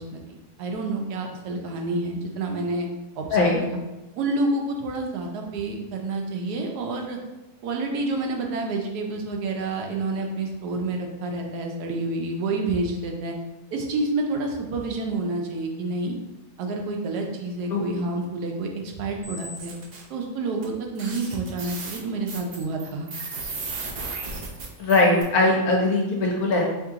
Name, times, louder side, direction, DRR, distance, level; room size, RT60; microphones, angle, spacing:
voice 1, 0.0-2.9 3.2-3.8 4.2-7.2 7.6-13.3 13.7-16.1 16.6-19.7 20.1-23.1, right 2 dB, 85° right, 2 dB, 1.2 m, -29 dB
sound 1, 19.2-20.0 20.6-20.7 21.0-25.2, right 3 dB, 55° right, 0.7 m, -35 dB
voice 2, 24.8-26.6, left 2 dB, 75° left, -1 dB, 1.3 m, -20 dB
3.3 x 2.8 x 3.5 m, 1.0 s
omnidirectional pair, 1.7 m